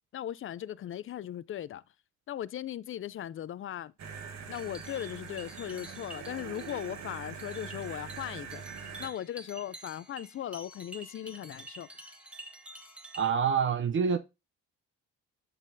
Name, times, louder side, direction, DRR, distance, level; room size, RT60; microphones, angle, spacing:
voice 1, 0.1-1.8 2.3-3.9 4.5-8.6 9.0-11.9, left 11 dB, 45° left, 0.4 m, -38 dB
sound 1, 4.0-9.1, right 6 dB, 60° right, 1.3 m, -43 dB
sound 2, 4.5-13.3, right 1 dB, 5° right, 1.3 m, -49 dB
voice 2, 13.1-14.2, right 6 dB, 40° right, 0.5 m, -26 dB
11.5 x 4.0 x 2.6 m
cardioid pair, 90°, 30 cm